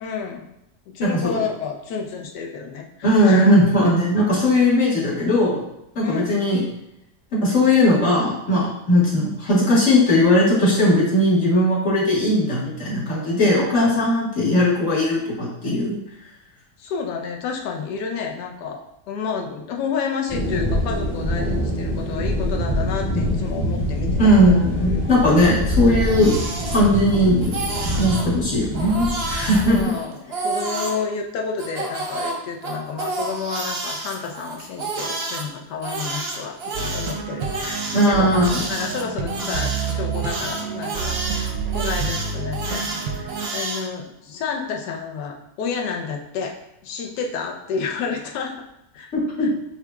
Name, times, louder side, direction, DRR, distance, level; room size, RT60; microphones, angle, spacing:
voice 1, 0.0-0.5 0.9-3.6 6.0-6.4 16.8-25.5 29.6-37.8 38.1-46.6 46.8-48.6 48.9-49.1 49.4-49.5, left 5 dB, 75° left, 2 dB, 1.3 m, -30 dB
voice 2, 1.0-1.4 3.0-5.6 6.0-6.6 7.3-15.9 24.2-26.4 26.7-27.6 28.0-29.8 37.9-38.6 49.1-49.5, left 1 dB, 45° left, -7 dB, 1.8 m, -18 dB
sound 1, 20.3-29.8, left 1 dB, 25° left, 1.3 m, -25 dB
Crying sobbing, 25.7-27.2 27.4-28.3 28.7-31.0 31.6-35.4 35.8-43.8, right 2 dB, 50° right, 0.8 m, -30 dB
sound 2, 36.7-43.5, right 5 dB, 70° right, 1.0 m, -28 dB
8.0 x 2.9 x 2.3 m, 0.83 s
omnidirectional pair, 1.8 m